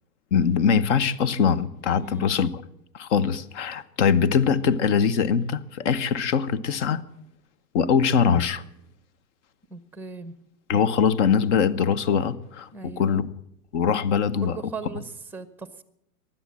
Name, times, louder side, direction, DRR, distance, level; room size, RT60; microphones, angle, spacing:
voice 1, 0.3-2.5 2.9-7.0 7.7-8.6 10.7-13.3 13.7-14.6, left 6 dB, 50° left, 15 dB, 1.1 m, -22 dB
voice 2, 2.0-2.3 9.7-10.3 12.7-13.2 14.4-15.8, right 4 dB, 5° right, 13 dB, 0.7 m, -38 dB
16.0 x 11.0 x 7.6 m, 0.76 s
hypercardioid pair, 135°, 45 cm